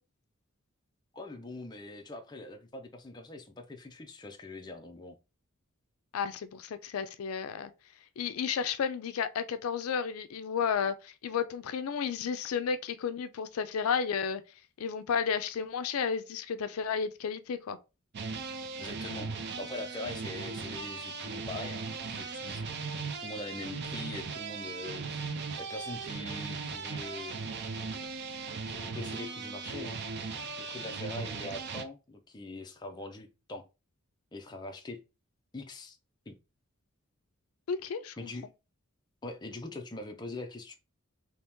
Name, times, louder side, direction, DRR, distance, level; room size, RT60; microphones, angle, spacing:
voice 1, 1.1-5.2 18.8-22.7 23.2-25.3 25.6-27.4 28.7-30.0 30.6-33.6 34.3-35.0 35.5-36.0 36.3-36.4 38.2-38.4 39.2-40.7, left 2 dB, 20° left, 0.5 m, -42 dB
voice 2, 6.1-7.7 8.2-14.4 14.8-17.8 37.7-38.3, left 6 dB, 75° left, 0.4 m, -32 dB
sound 1, 18.1-31.8, right 4 dB, 50° right, 0.5 m, -38 dB
2.9 x 2.8 x 3.5 m
head